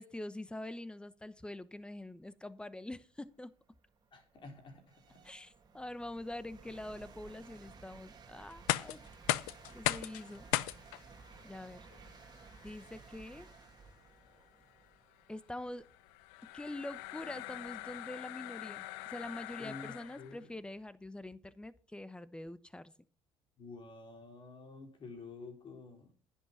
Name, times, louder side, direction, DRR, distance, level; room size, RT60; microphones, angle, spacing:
voice 1, 0.0-3.5 5.2-9.0 9.7-10.5 11.4-11.9 12.6-13.5 15.3-15.9 16.5-22.9, left 1 dB, 10° left, 16 dB, 0.9 m, -45 dB
sound 1, 2.5-2.6 3.2-18.0, right 5 dB, 40° right, 2.1 m, -57 dB
voice 2, 4.1-5.3 19.6-20.5 23.6-26.1, left 3 dB, 45° left, 4 dB, 4.0 m, -50 dB
sound 2, 8.5-20.4, left 17 dB, 90° left, 0.5 m, -40 dB
10.5 x 8.3 x 5.9 m, 0.41 s
supercardioid pair, 80°, 11 cm